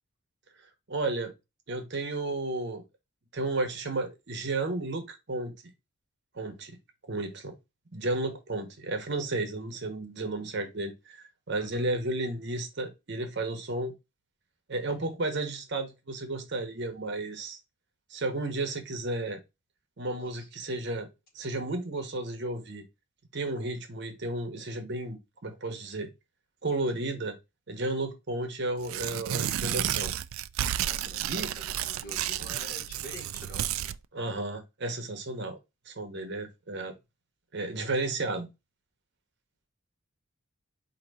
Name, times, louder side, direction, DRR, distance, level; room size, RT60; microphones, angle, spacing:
voice 1, 0.9-1.3 1.7-2.8 3.3-5.5 6.3-6.8 7.1-7.6 7.9-13.9 14.7-17.6 18.1-19.4 20.0-21.1 21.3-22.8 23.3-26.1 26.6-27.4 27.7-30.1 31.3-31.5 34.1-35.6 35.9-36.9 37.5-38.5, right 2 dB, 55° right, 0.9 m, -33 dB
voice 2, 20.2-20.5 30.8-31.3 31.6-33.7, equal, 45° left, 1.9 m, -47 dB
Tearing, 28.8-34.0, right 11 dB, 75° right, 0.3 m, -31 dB
4.6 x 2.8 x 4.0 m
head